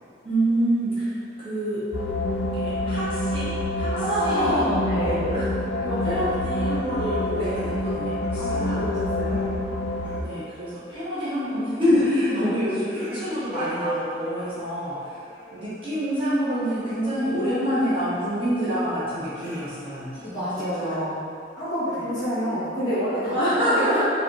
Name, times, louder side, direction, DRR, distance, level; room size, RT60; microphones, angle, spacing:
voice 1, 0.2-1.8 2.5-3.9 4.2-4.6 4.9-5.5 5.8-8.8 10.2-15.2 15.5-20.2 20.6-20.7 21.9-22.1 23.3-24.0, equal, 30° right, -12 dB, 1.3 m, -27 dB
sound 1, 1.9-10.2, left 1 dB, 85° left, 0.5 m, -27 dB
voice 2, 3.9-5.2 5.9-6.3 7.3-7.6 8.4-9.5 12.3-12.6 20.2-21.2 21.6-24.0, equal, 20° left, -14 dB, 1.3 m, -27 dB
sound 2, 5.9-8.9 9.3-10.4 10.9-11.2 11.8-12.3 12.6-17.7 18.1-18.6 18.9-21.1 21.8-23.3, right 1 dB, 10° right, 1.2 m, -41 dB
4.8 x 3.4 x 3.1 m, 2.4 s
head